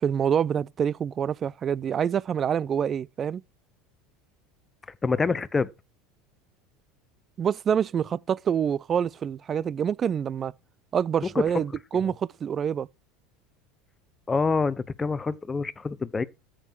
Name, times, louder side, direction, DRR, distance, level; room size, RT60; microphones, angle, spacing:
voice 1, 0.0-3.4 7.4-10.5 10.9-12.9, right 8 dB, 35° right, 0.5 m, -26 dB
voice 2, 5.0-5.7 11.3-11.4 14.3-16.2, left 4 dB, 20° left, 1.0 m, -26 dB
13.5 x 7.7 x 4.7 m
hypercardioid pair, 80°, 0 cm